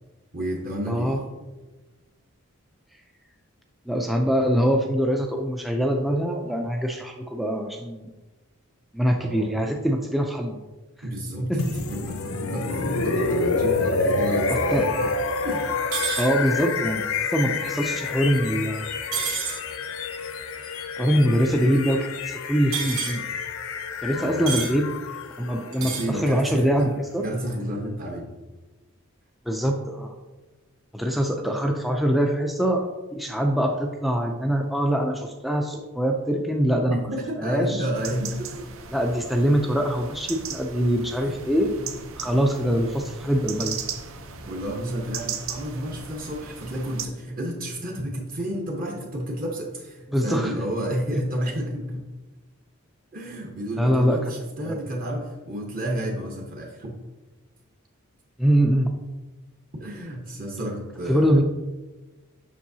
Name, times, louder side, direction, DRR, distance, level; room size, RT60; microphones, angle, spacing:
voice 1, 0.3-1.2 9.2-9.5 11.0-15.1 15.4-15.7 24.1-24.6 25.8-26.9 27.2-28.3 36.9-38.8 41.2-41.9 42.2-42.3 44.5-52.0 53.1-56.9 59.8-61.4, right 1 dB, 40° right, -1 dB, 0.9 m, -31 dB
voice 2, 0.9-1.2 3.9-8.1 8.9-10.6 11.5-11.8 14.5-14.9 16.2-18.8 21.0-23.2 24.0-24.9 25.4-27.2 29.5-30.1 30.9-37.1 37.4-37.9 38.9-41.7 42.2-43.8 50.1-50.5 53.8-54.2 54.6-54.8 58.4-58.9 61.1-61.4, equal, ahead, 1 dB, 0.3 m, -23 dB
sound 1, 11.6-27.5, left 4 dB, 70° left, 0.6 m, -28 dB
sound 2, 15.9-16.3 19.1-19.6 22.7-23.2 24.5-24.7 25.7-26.1, right 6 dB, 85° right, 2.0 m, -28 dB
sound 3, 37.9-47.1, right 6 dB, 70° right, 0.7 m, -37 dB
7.4 x 6.1 x 2.7 m, 1.2 s
head